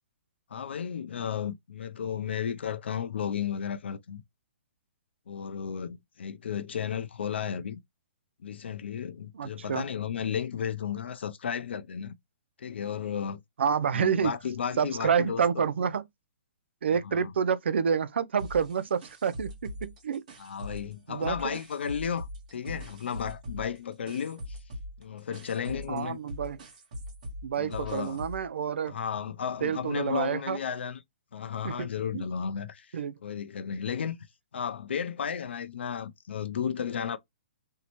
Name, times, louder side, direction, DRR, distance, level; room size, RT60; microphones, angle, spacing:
voice 1, 0.5-4.2 5.3-7.8 8.4-12.2 12.6-13.4 13.9-15.7 17.0-17.3 20.4-24.6 25.0-26.2 27.6-28.2 28.9-31.0 31.3-34.2 34.5-37.2, left 7 dB, 75° left, 0.5 m, -34 dB
voice 2, 9.3-9.9 13.6-14.3 14.8-16.0 16.8-20.2 21.1-21.6 25.9-26.6 27.4-29.0 29.6-30.6 31.6-31.9 32.1-32.2 32.9-33.2, right 7 dB, 80° right, 0.4 m, -28 dB
sound 1, 18.4-20.9 21.2-28.5, left 1 dB, 40° right, 1.2 m, -42 dB
2.7 x 2.1 x 2.9 m
hypercardioid pair, 175°, 6 cm